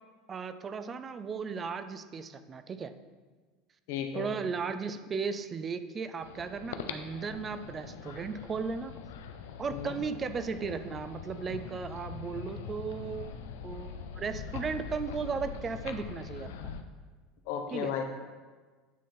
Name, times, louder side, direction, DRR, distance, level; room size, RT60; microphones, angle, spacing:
voice 1, 0.3-2.9 4.1-8.9 9.6-13.4 13.6-16.7 17.7-17.9, right 5 dB, 25° right, 11 dB, 0.4 m, -36 dB
voice 2, 3.9-4.4 9.7-10.0 17.5-18.0, left 8 dB, 75° left, 4 dB, 0.9 m, -34 dB
sound 1, 6.2-16.8, left 6 dB, 90° left, 0.5 m, -42 dB
9.2 x 3.7 x 4.3 m, 1.4 s
supercardioid pair, 125°, 0 cm